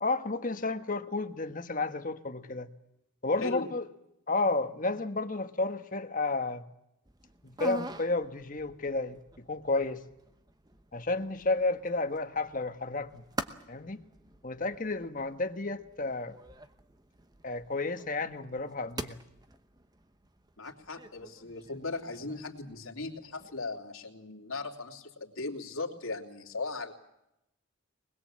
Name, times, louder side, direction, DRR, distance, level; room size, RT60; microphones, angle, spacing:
voice 1, 0.0-2.7 3.2-3.9 4.3-6.6 7.4-10.0 10.9-13.2 13.7-14.0 14.4-16.4 17.4-19.2, left 3 dB, 40° left, 8 dB, 1.3 m, -32 dB
sound 1, 7.0-23.8, right 2 dB, 20° right, 0.9 m, -46 dB
voice 2, 20.6-26.9, left 3 dB, 75° left, 2 dB, 3.0 m, -38 dB
24.0 x 21.0 x 7.5 m, 0.85 s
head